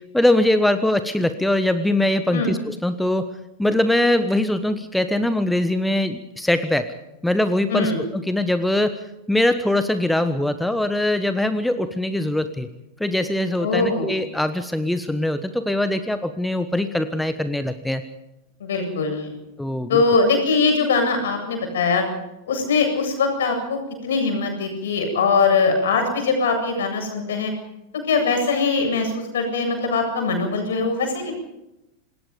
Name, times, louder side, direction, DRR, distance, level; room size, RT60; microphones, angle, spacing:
voice 1, 0.1-3.3 3.6-6.9 7.2-9.0 9.3-12.7 13.0-18.0 19.6-20.0, left 1 dB, 5° left, 11 dB, 1.3 m, -22 dB
voice 2, 13.6-14.1 18.6-19.3 19.9-22.0 22.5-27.5 28.1-31.3, left 4 dB, 60° left, 4 dB, 7.8 m, -21 dB
27.0 x 20.5 x 5.2 m, 0.91 s
figure-of-eight pair, 90°, 0 cm